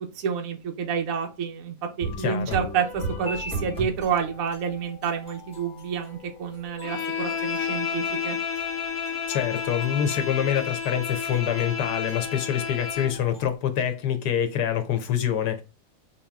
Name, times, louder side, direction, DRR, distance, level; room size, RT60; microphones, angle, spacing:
voice 1, 0.1-8.4, right 7 dB, 65° right, 1.1 m, -29 dB
sound 1, 2.0-13.5, right 1 dB, 5° left, 1.1 m, -39 dB
Bowed string instrument, 6.8-13.2, left 7 dB, 60° left, 1.0 m, -31 dB
voice 2, 9.3-15.6, left 9 dB, 85° left, 1.3 m, -26 dB
4.4 x 2.7 x 2.3 m
omnidirectional pair, 1.7 m